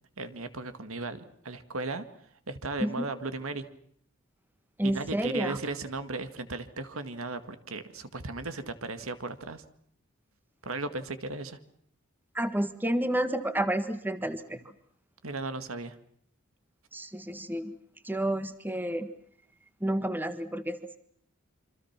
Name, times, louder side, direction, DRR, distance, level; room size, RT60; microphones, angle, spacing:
voice 1, 0.2-2.1 2.5-3.7 4.8-9.6 10.6-11.6 15.2-15.9, right 3 dB, 75° right, 10 dB, 2.0 m, -36 dB
voice 2, 4.8-5.6 12.3-14.6 16.9-17.7 18.0-19.1 19.8-21.0, right 1 dB, 10° right, 10 dB, 1.6 m, -30 dB
27.5 x 26.0 x 6.0 m, 0.65 s
head